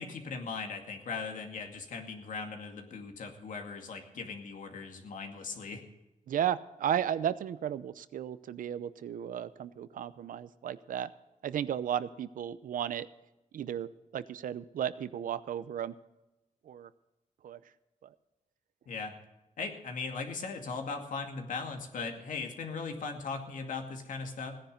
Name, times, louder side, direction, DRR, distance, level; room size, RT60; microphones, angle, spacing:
voice 1, 0.0-5.8 18.9-19.1 19.6-24.6, left 4 dB, 75° left, 4 dB, 2.3 m, -39 dB
voice 2, 6.3-11.1 11.4-13.1 13.5-15.9 16.7-16.9 17.4-17.6, right 9 dB, 90° right, 15 dB, 0.7 m, -34 dB
17.0 x 10.0 x 5.3 m, 1.0 s
wide cardioid pair, 140°, 14 cm